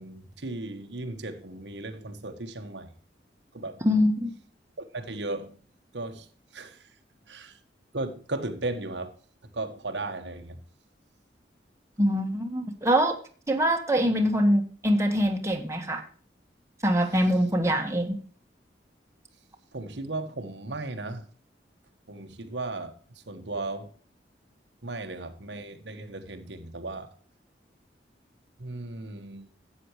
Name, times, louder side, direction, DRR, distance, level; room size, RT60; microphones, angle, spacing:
voice 1, 0.0-2.9 3.5-3.8 4.9-5.6 5.9-6.3 6.5-6.8 7.3-7.6 7.9-9.1 9.5-10.6 19.7-21.3 22.1-23.0 23.3-23.9 24.8-27.1 28.6-29.5, right 2 dB, 80° right, 1.3 m, -36 dB
voice 2, 3.8-4.4 12.0-13.2 13.5-16.0 16.8-18.2, equal, 15° right, 1.5 m, -24 dB
13.0 x 8.7 x 3.2 m
head